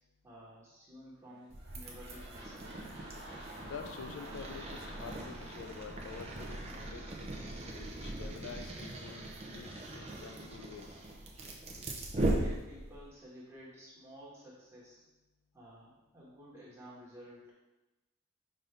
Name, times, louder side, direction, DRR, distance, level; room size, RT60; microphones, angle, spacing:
voice 1, 0.2-2.8 12.1-15.0 15.5-17.5, equal, 15° right, -7 dB, 1.2 m, -52 dB
sound 1, 1.2-7.8 8.3-8.4, right 1 dB, 55° right, 1.1 m, -52 dB
sound 2, 1.5-13.1, right 1 dB, 30° right, 0.5 m, -39 dB
voice 2, 3.6-6.6 6.9-7.3 7.7-11.0, left 6 dB, 70° left, 8 dB, 0.3 m, -48 dB
5.3 x 2.6 x 3.3 m, 1.0 s
head